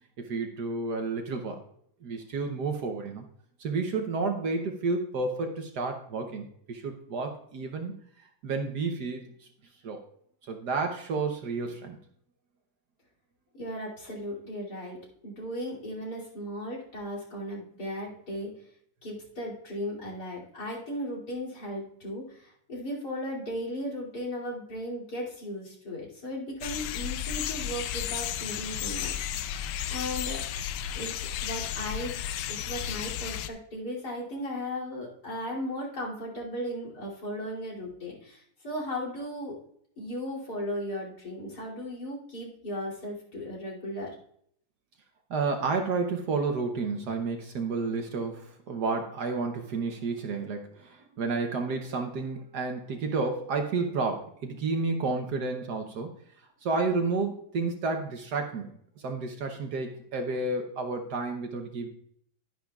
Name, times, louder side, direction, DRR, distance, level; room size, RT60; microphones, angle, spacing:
voice 1, 0.2-1.6 2.0-3.2 3.6-7.9 8.4-9.3 9.8-10.0 10.5-12.0 45.3-56.1 56.6-61.9, right 4 dB, 60° right, 4 dB, 1.3 m, -31 dB
voice 2, 13.5-15.0 15.2-18.5 19.0-30.4 30.9-31.2 31.4-32.2 32.5-39.6 40.0-44.1, equal, 55° left, -3 dB, 3.3 m, -36 dB
sound 1, 26.6-33.5, left 10 dB, 80° left, 1.3 m, -33 dB
11.0 x 10.0 x 2.4 m, 0.66 s
omnidirectional pair, 2.1 m